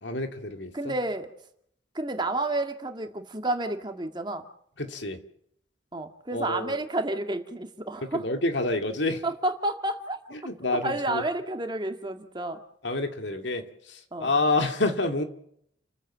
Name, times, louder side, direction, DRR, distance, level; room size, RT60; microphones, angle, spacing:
voice 1, 0.0-1.0 4.8-5.2 6.3-6.8 8.1-9.2 10.3-11.2 12.8-15.2, left 2 dB, 65° left, 6 dB, 2.4 m, -28 dB
voice 2, 0.7-1.3 2.0-4.5 5.9-8.3 9.2-10.2 10.8-12.6 14.1-14.3, right 2 dB, 25° right, 5 dB, 2.0 m, -30 dB
30.0 x 14.5 x 7.5 m, 0.70 s
head